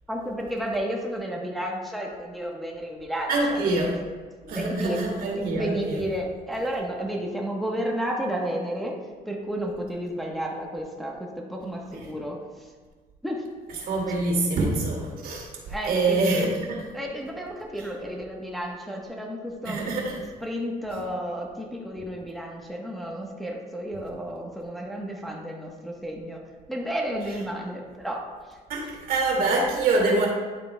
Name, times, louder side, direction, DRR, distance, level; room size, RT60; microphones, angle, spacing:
voice 1, 0.1-4.0 4.4-5.0 5.4-8.9 9.3-12.4 13.2-13.4 15.7-16.5 16.9-26.4 26.7-28.2 28.5-28.6, equal, ahead, -2 dB, 1.0 m, -32 dB
voice 2, 3.3-3.9 4.5-6.0 11.9-12.1 13.8-15.5 15.8-16.8 19.6-20.2 28.7-30.3, right 2 dB, 60° right, -1 dB, 2.2 m, -25 dB
10.5 x 7.4 x 2.2 m, 1.4 s
cardioid pair, 110°, 17 cm